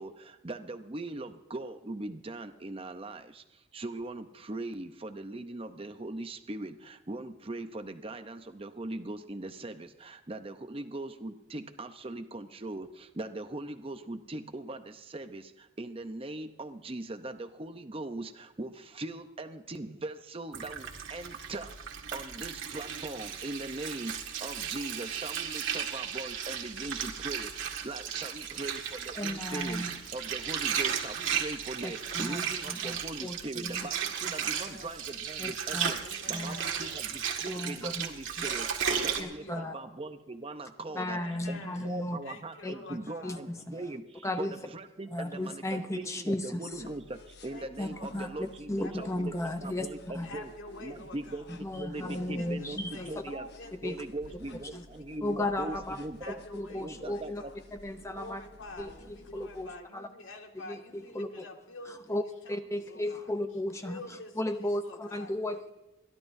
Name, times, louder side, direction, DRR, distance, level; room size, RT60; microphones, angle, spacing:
voice 1, 0.0-21.7 22.1-29.8 30.1-36.0 36.3-41.2 41.5-44.5 44.7-50.5 50.8-53.5 53.8-56.4 56.7-57.5, right 2 dB, 30° right, 7 dB, 0.7 m, -40 dB
Water, 20.5-39.2, right 8 dB, 85° right, 1.8 m, -35 dB
voice 2, 29.2-29.9 31.8-33.9 35.4-35.9 36.3-36.6 37.5-38.1 38.4-38.5 39.2-39.7 40.9-42.2 42.6-42.7 43.2-43.8 44.2-44.5 45.1-46.8 47.8-50.3 51.5-53.1 53.8-54.0 54.7-54.8 55.2-56.0 56.5-57.4 57.7-58.4 58.8-60.1 60.7-61.3 62.1-64.0 64.4-65.6, left 1 dB, 15° left, 7 dB, 0.6 m, -35 dB
voice 3, 34.4-35.1 36.0-37.0 38.8-39.9 40.9-41.9 42.2-43.4 47.4-48.4 48.8-49.4 50.2-51.6 51.9-54.0 54.2-55.8 56.2-57.6 58.1-63.3 63.8-65.3, left 2 dB, 85° left, 2 dB, 2.0 m, -47 dB
sound 1, 46.7-59.7, left 1 dB, 55° left, 1.2 m, -54 dB
30.0 x 11.5 x 2.7 m, 1.0 s
head